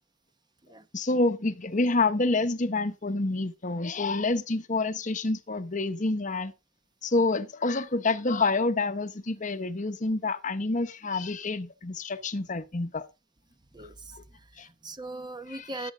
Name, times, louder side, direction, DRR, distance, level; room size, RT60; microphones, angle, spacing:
voice 1, 0.9-6.5 7.0-13.1 14.1-14.2 14.6-14.7 15.5-15.9, left 3 dB, 40° left, 1.0 m, -28 dB
voice 2, 13.7-15.9, right 2 dB, 20° right, 0.9 m, -40 dB
14.0 x 8.7 x 3.7 m
head